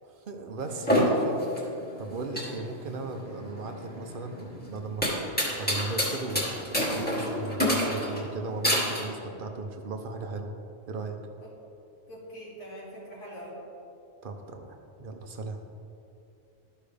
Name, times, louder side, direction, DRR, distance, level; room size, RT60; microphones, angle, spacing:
voice 1, 0.0-1.5 2.0-10.5 10.9-11.2 14.2-15.6, right 3 dB, 50° right, 4 dB, 0.9 m, -37 dB
sound 1, 0.6-9.1, equal, 10° left, 1.8 m, -28 dB
voice 2, 12.1-13.6, equal, 90° left, -6 dB, 2.6 m, -43 dB
13.5 x 5.5 x 3.4 m, 2.8 s
omnidirectional pair, 1.2 m